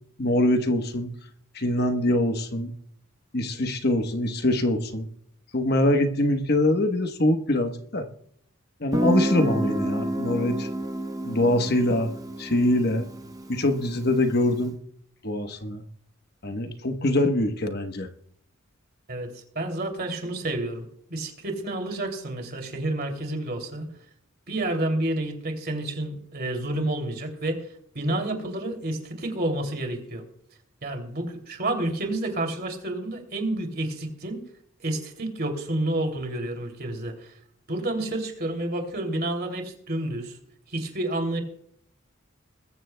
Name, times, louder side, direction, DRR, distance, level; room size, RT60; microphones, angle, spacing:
voice 1, 0.2-1.1 1.5-2.7 3.3-5.1 5.5-8.1 8.8-10.7 11.2-12.1 12.4-13.1 13.5-14.7 15.2-15.8 16.4-18.1, left 1 dB, 50° left, 6 dB, 1.1 m, -24 dB
Guitar, 8.9-14.5, right 1 dB, 15° right, 0.9 m, -29 dB
voice 2, 19.1-23.8 24.5-27.7 27.9-30.2 30.8-34.5 34.8-37.3 37.7-40.4 40.7-41.4, right 1 dB, 45° right, 4 dB, 2.8 m, -29 dB
21.5 x 14.5 x 2.2 m, 0.68 s
head